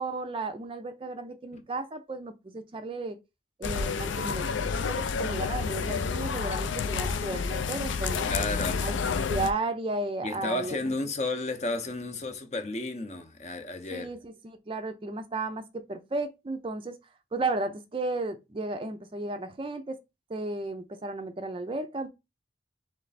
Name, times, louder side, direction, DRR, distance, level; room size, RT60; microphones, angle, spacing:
voice 1, 0.0-3.2 3.6-8.3 8.8-9.0 9.3-10.8 13.9-17.0 17.3-20.0 20.3-22.1, right 2 dB, 30° right, 0.4 m, -34 dB
sound 1, 3.6-9.5, left 5 dB, 85° left, 0.4 m, -29 dB
voice 2, 8.2-8.9 10.2-14.1, left 2 dB, 35° left, 0.6 m, -32 dB
3.3 x 3.2 x 4.0 m
head